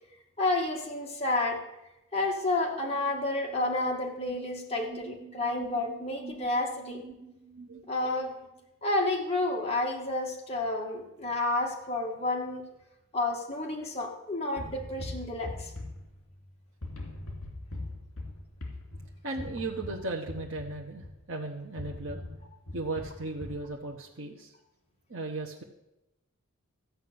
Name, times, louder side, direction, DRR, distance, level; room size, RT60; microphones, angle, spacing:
voice 1, 0.4-1.6 2.1-7.0 7.9-8.3 8.8-12.6 13.1-15.7, left 2 dB, 25° left, -1 dB, 1.9 m, -30 dB
sound 1, 2.4-2.5 2.7-8.5, right 4 dB, 80° right, 1.8 m, -47 dB
sound 2, 14.6-16.5 16.8-21.3 21.8-23.7, left 2 dB, 70° left, 2.8 m, -41 dB
voice 2, 19.2-22.2 22.7-24.5 25.1-25.6, right 2 dB, 60° right, 0 dB, 1.0 m, -36 dB
14.0 x 5.8 x 8.6 m, 0.92 s
head